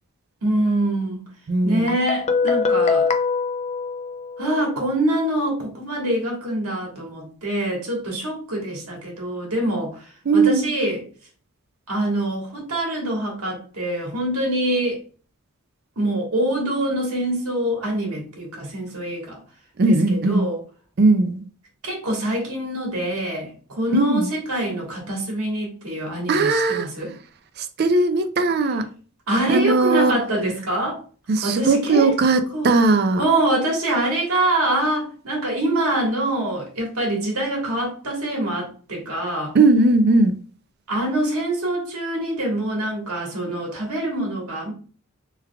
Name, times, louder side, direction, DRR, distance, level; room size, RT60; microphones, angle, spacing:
voice 1, 0.4-1.2 1.6-3.1 4.4-11.0 11.9-15.0 16.0-19.4 19.9-20.6 21.8-27.1 29.3-31.0 31.4-32.1 32.5-32.7 33.2-39.5 40.9-44.7, right 1 dB, 85° right, 1.4 m, -25 dB
voice 2, 1.5-1.9 10.3-10.7 19.8-20.5 21.0-21.4 23.9-24.2 26.3-26.9 27.6-28.9 29.5-30.2 31.3-33.2 39.5-40.4, right 3 dB, 45° right, 0.4 m, -18 dB
Guitar, 1.9-4.7, left 4 dB, 30° left, 0.3 m, -23 dB
3.5 x 3.3 x 2.2 m
head